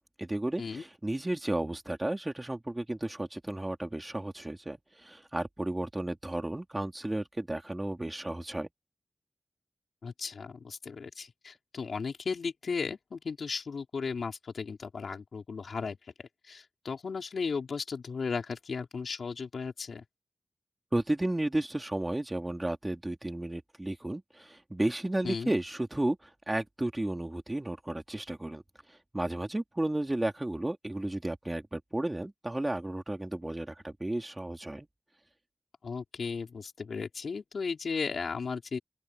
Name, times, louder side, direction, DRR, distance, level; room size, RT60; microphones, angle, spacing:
voice 1, 0.2-8.7 20.9-26.2 26.5-28.6 29.1-34.9, right 1 dB, 15° right, 3.4 m, -33 dB
voice 2, 10.0-20.0 25.2-25.5 35.8-38.8, left 5 dB, 75° left, 4.5 m, -36 dB
open air
wide cardioid pair, 115°, 0 cm